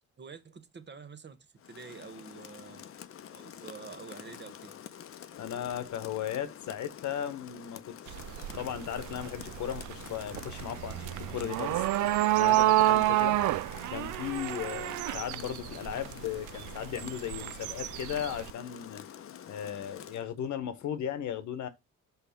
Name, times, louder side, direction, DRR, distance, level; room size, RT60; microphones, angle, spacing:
voice 1, 0.2-2.8 3.3-4.7 13.1-13.3, right 5 dB, 35° right, 1.1 m, -47 dB
Rain, 1.6-20.3, left 9 dB, 45° left, 0.7 m, -48 dB
voice 2, 5.4-8.2 8.5-11.8 12.4-13.4 13.9-19.0 19.5-21.7, left 9 dB, 70° left, 1.1 m, -36 dB
sound 1, 8.1-18.5, right 16 dB, 80° right, 0.5 m, -29 dB
5.8 x 3.8 x 5.7 m
cardioid pair, 90°, 30 cm